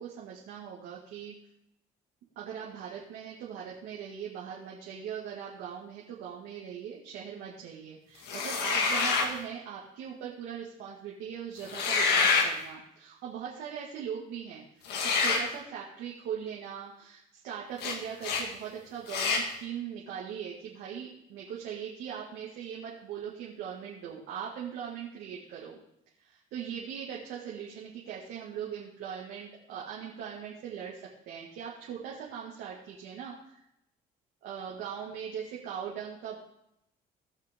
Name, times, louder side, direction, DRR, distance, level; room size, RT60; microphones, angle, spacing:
voice 1, 0.0-1.3 2.4-14.6 15.0-25.8 26.2-33.6 34.4-36.3, right 8 dB, 85° right, -5 dB, 2.2 m, -40 dB
sound 1, 8.3-9.3 11.6-12.5 14.9-15.5 17.8-18.0 18.2-18.5 19.1-19.5, left 4 dB, 80° left, 1.9 m, -26 dB
18.0 x 6.1 x 3.7 m, 0.78 s
cardioid pair, 110°, 17 cm